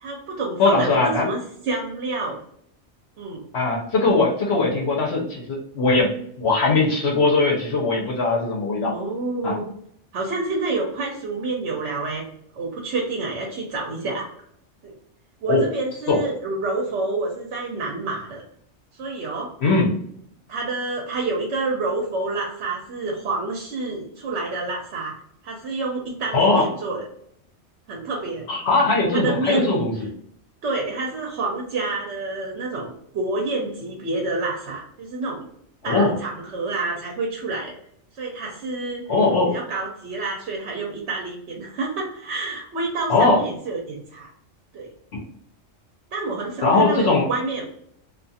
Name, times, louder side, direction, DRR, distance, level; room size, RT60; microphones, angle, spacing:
voice 1, 0.0-1.4 1.6-2.4 3.2-3.4 4.6-4.7 8.9-9.6 10.1-12.2 12.5-14.3 14.8-14.9 15.4-18.4 18.9-19.5 20.5-25.1 25.4-27.0 27.9-28.5 29.1-29.7 30.6-35.4 35.8-37.7 38.2-39.0 39.5-44.3 44.7-44.9 46.1-47.7, right 3 dB, 75° right, 0 dB, 0.9 m, -28 dB
voice 2, 0.6-1.3 3.5-9.0 9.4-9.6 15.5-15.6 16.1-16.2 19.6-19.9 26.3-26.7 28.5-30.1 35.8-36.1 39.1-39.6 43.1-43.4 45.1-45.2 46.6-47.3, left 3 dB, 65° left, -1 dB, 0.9 m, -20 dB
2.4 x 2.4 x 2.6 m, 0.70 s
omnidirectional pair, 1.2 m